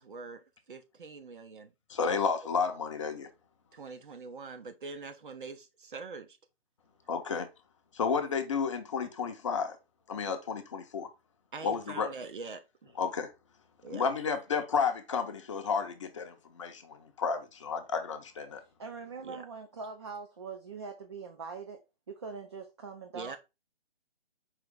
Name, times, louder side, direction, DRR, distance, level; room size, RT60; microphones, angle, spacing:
voice 1, 0.0-1.7 3.7-6.4 11.5-13.0 13.8-14.0 19.2-19.4 23.1-23.4, right 4 dB, 55° right, 0.9 m, -44 dB
voice 2, 1.9-3.3 7.1-7.5 7.9-9.8 10.1-11.1 11.6-12.1 13.0-13.3 13.9-18.6, left 5 dB, 30° left, 0.6 m, -32 dB
voice 3, 18.8-23.4, right 5 dB, 30° right, 0.5 m, -42 dB
4.8 x 3.1 x 3.5 m
figure-of-eight pair, 140°, 30 cm